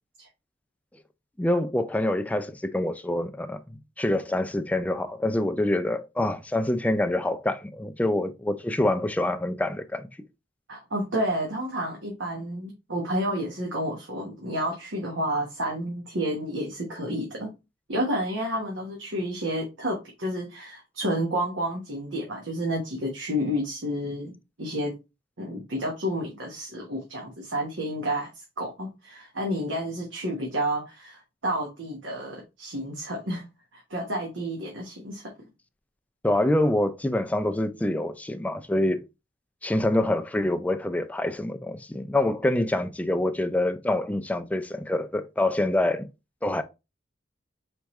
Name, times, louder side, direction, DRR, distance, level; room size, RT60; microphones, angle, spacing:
voice 1, 1.4-10.1 36.2-39.0 39.6-46.1 46.4-46.6, left 1 dB, 10° left, 0.4 m, -26 dB
voice 2, 10.7-17.5 17.9-24.3 24.6-24.9 25.4-33.4 33.7-35.3, equal, 90° right, 1.1 m, -30 dB
4.5 x 3.5 x 3.0 m
head